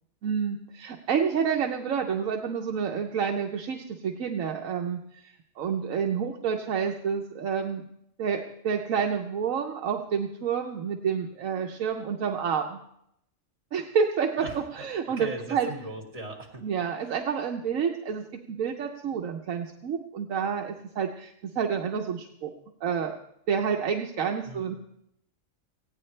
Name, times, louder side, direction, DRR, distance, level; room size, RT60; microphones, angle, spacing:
voice 1, 0.2-7.9 8.2-12.8 13.7-14.4 14.8-15.7 16.6-22.5 22.8-23.1 23.5-24.8, right 7 dB, 80° right, 2 dB, 1.3 m, -29 dB
voice 2, 14.4-16.7 17.0-17.1 24.4-24.7, right 2 dB, 60° right, 1 dB, 2.7 m, -39 dB
19.0 x 15.5 x 3.3 m, 0.77 s
omnidirectional pair, 1.4 m